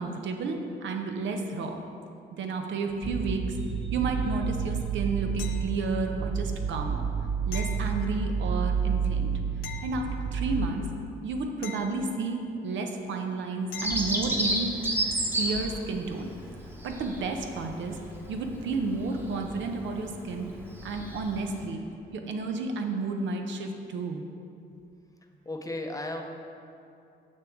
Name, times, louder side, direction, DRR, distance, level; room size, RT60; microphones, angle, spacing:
voice 1, 0.0-1.8 2.3-3.7 3.9-7.1 7.5-9.3 9.8-10.9 11.2-14.7 15.4-16.3 16.8-18.0 18.3-20.5 20.8-21.8 22.1-24.2, right 3 dB, 70° right, 4 dB, 0.7 m, -31 dB
sound 1, 3.0-10.7, right 6 dB, 35° right, 0.6 m, -30 dB
sound 2, 5.4-6.2 7.5-8.6 9.6-10.7 11.6-12.7 13.7-14.3 17.1-17.2, left 8 dB, 80° left, 0.6 m, -44 dB
Bird vocalization bird call bird song, 13.8-21.6, right 1 dB, 10° right, 1.0 m, -33 dB
voice 2, 25.5-26.2, left 2 dB, 15° left, 3 dB, 0.7 m, -34 dB
7.0 x 6.5 x 3.6 m, 2.6 s
cardioid pair, 90°, 20 cm